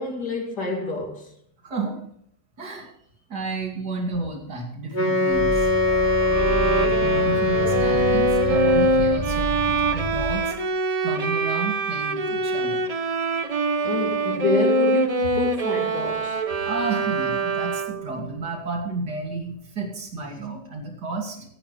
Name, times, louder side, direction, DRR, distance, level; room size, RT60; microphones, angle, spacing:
voice 1, 0.0-1.3 5.6-6.6 7.0-7.2 13.8-16.7, left 3 dB, 65° left, 1 dB, 3.4 m, -29 dB
voice 2, 1.6-2.0 2.6-2.9 3.3-5.7 7.0-10.5 11.0-12.9 16.6-21.4, right 3 dB, 65° right, 1 dB, 3.2 m, -31 dB
Wind instrument woodwind instrument, 4.9-9.1, left 2 dB, 25° left, 2.6 m, -22 dB
sound 1, 5.3-10.4, left 1 dB, 40° left, 3.7 m, -31 dB
Bowed string instrument, 6.3-18.2, right 2 dB, 40° right, 0.5 m, -24 dB
17.5 x 11.0 x 3.3 m, 0.68 s
omnidirectional pair, 1.9 m